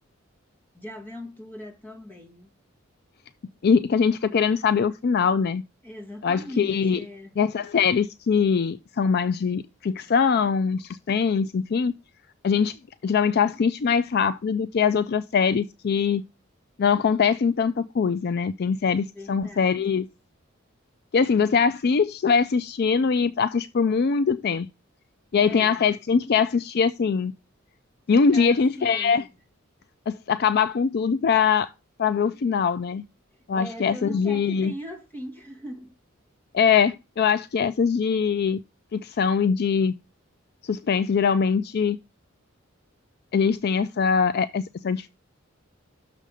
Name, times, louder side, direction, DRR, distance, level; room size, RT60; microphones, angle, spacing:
voice 1, 0.7-2.5 5.8-7.3 19.1-19.8 25.4-25.8 28.1-29.3 33.3-35.9, left 1 dB, 10° left, 1.8 m, -40 dB
voice 2, 3.6-5.6 6.2-7.0 7.4-12.0 12.4-16.2 16.8-20.1 21.1-24.7 25.3-27.3 28.1-29.2 30.1-31.7 32.0-33.0 33.5-34.7 36.5-38.6 38.9-39.9 40.6-42.0 43.3-45.1, left 6 dB, 50° left, 0.4 m, -22 dB
6.6 x 5.1 x 6.2 m
head